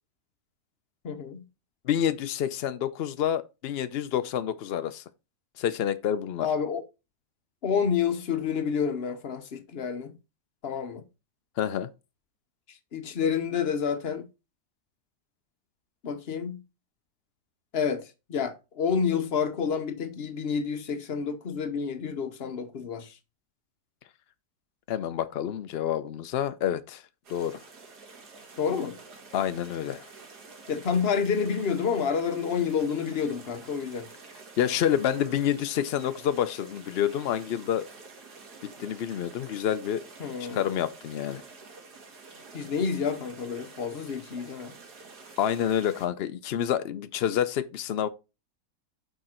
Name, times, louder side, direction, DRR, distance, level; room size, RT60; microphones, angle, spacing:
voice 1, 1.0-1.4 6.4-6.8 7.6-10.2 10.6-11.0 12.7-14.3 16.0-16.6 17.7-23.2 28.6-29.0 30.7-34.1 40.2-40.7 42.5-44.8, left 6 dB, 45° left, 1.0 m, -29 dB
voice 2, 1.9-5.0 5.6-6.5 11.6-11.9 24.9-27.0 27.3-27.6 29.3-30.1 34.6-37.9 38.6-40.0 40.4-41.4 45.4-48.1, left 10 dB, 75° left, 0.5 m, -28 dB
sound 1, 27.2-46.1, right 4 dB, 85° right, 2.3 m, -49 dB
6.3 x 5.9 x 4.3 m
omnidirectional pair, 1.7 m